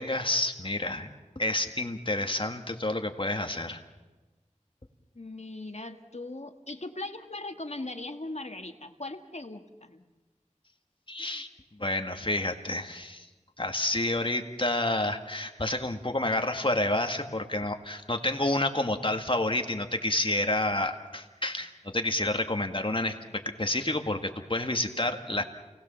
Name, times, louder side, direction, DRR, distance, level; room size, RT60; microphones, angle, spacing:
voice 1, 0.0-3.8 11.1-11.5 11.8-13.3 13.6-25.4, left 1 dB, 40° left, 5 dB, 2.0 m, -29 dB
voice 2, 5.2-10.0, left 2 dB, 60° left, 6 dB, 1.7 m, -39 dB
28.5 x 19.5 x 7.2 m, 1.2 s
wide cardioid pair, 40°, 13 cm